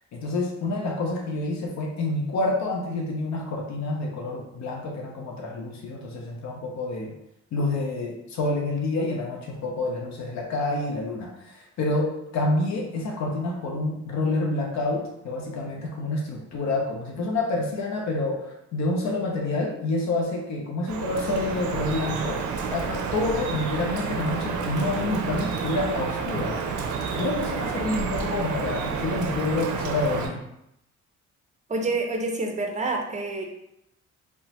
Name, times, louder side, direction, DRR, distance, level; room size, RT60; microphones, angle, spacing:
voice 1, 0.1-7.1 7.5-22.4 22.7-26.6 27.1-30.4, left 2 dB, 65° left, 0 dB, 0.6 m, -28 dB
Drip, 20.9-30.3, right 5 dB, 75° right, 0.5 m, -30 dB
voice 2, 31.7-33.5, right 2 dB, 25° right, 2 dB, 0.5 m, -27 dB
2.9 x 2.1 x 2.8 m, 0.82 s
cardioid pair, 90°, 30 cm